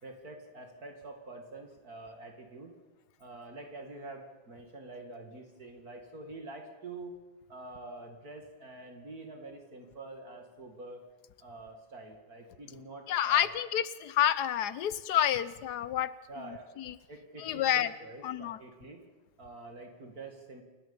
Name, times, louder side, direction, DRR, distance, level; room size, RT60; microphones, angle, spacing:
voice 1, 0.0-2.7 3.2-7.2 7.5-11.0 11.4-13.6 16.3-16.7 17.1-19.0 19.4-20.6, right 2 dB, 50° right, 4 dB, 2.9 m, -46 dB
voice 2, 13.1-16.1 16.8-16.9 17.4-17.9 18.2-18.6, left 11 dB, 65° left, 15 dB, 1.3 m, -29 dB
28.0 x 11.0 x 8.9 m, 1.2 s
omnidirectional pair, 2.1 m